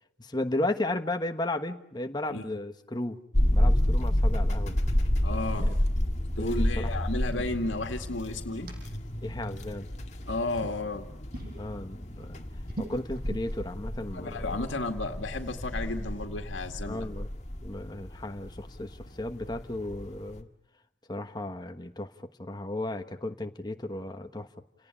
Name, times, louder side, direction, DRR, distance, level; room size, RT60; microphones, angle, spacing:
voice 1, 0.2-3.2 3.5-4.8 5.7-5.8 6.4-7.1 9.2-9.9 11.6-12.4 12.8-14.6 16.8-17.3 17.6-20.5 21.1-24.5, left 1 dB, 20° left, 6 dB, 1.2 m, -34 dB
sound 1, 3.3-20.4, left 1 dB, 35° left, 1.8 m, -30 dB
sound 2, 4.8-5.1 5.4-5.9 7.0-8.2 8.7-8.8 9.8-10.2 10.5-10.8 11.3-11.6 12.0-13.5, right 1 dB, 50° right, 5.9 m, -41 dB
voice 2, 5.2-5.7 6.4-8.7 10.3-11.1 14.1-17.1, left 2 dB, 80° left, 4 dB, 2.1 m, -33 dB
29.5 x 18.5 x 10.0 m, 0.82 s
head